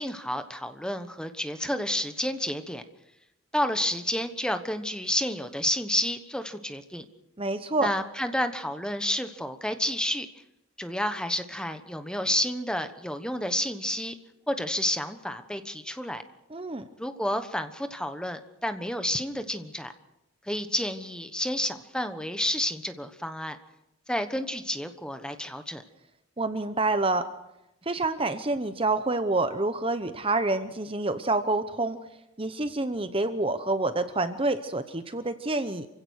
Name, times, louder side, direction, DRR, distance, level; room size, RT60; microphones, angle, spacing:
voice 1, 0.0-2.8 3.5-7.0 7.8-10.3 10.8-14.1 14.5-16.2 17.0-19.9 20.4-23.6 24.1-25.8, left 1 dB, 5° left, 8 dB, 1.1 m, -30 dB
voice 2, 7.4-7.9 16.5-16.8 26.4-27.3 27.9-32.0 32.4-35.9, right 2 dB, 25° right, 10 dB, 0.9 m, -27 dB
28.0 x 16.5 x 6.5 m, 0.88 s
head